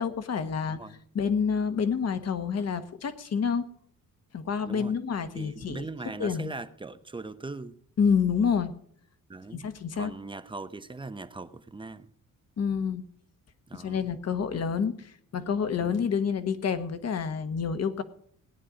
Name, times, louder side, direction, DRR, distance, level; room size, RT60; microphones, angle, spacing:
voice 1, 0.0-0.8 1.1-3.7 4.3-5.9 6.2-6.5 8.0-8.7 9.5-10.1 12.6-13.0 13.7-18.0, left 6 dB, 50° left, 1.3 m, -28 dB
voice 2, 0.7-1.0 4.6-5.0 5.3-7.8 9.3-9.7 10.0-12.1 13.7-14.1 14.5-14.6 15.8-16.1, right 3 dB, 15° right, 0.7 m, -40 dB
18.0 x 9.9 x 5.1 m
cardioid pair, 130°, 33 cm